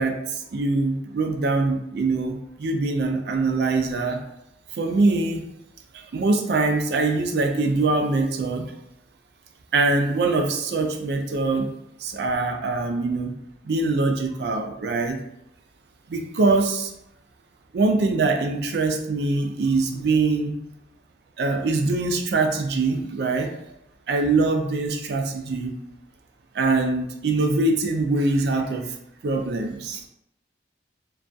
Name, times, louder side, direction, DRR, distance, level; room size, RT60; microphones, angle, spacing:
voice 1, 0.0-4.2 4.7-5.5 5.9-8.7 9.7-11.7 12.0-13.3 13.6-15.2 16.1-16.9 17.7-20.5 21.4-23.5 24.1-25.7 26.5-28.9 29.2-30.1, right 3 dB, 60° right, 4 dB, 0.3 m, -23 dB
2.3 x 2.2 x 2.5 m, 0.79 s
head